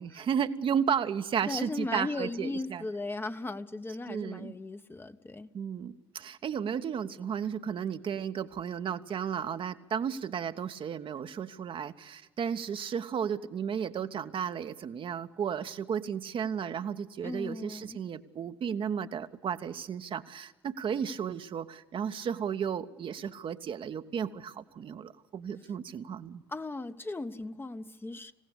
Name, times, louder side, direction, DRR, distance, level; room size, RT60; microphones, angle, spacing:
voice 1, 0.0-2.8 4.1-4.5 5.5-26.4, right 7 dB, 40° right, 9 dB, 1.1 m, -34 dB
voice 2, 1.5-5.5 17.2-18.0 26.5-28.3, left 2 dB, 15° left, 9 dB, 1.1 m, -37 dB
27.0 x 17.0 x 8.4 m, 1.1 s
figure-of-eight pair, 50°, 13 cm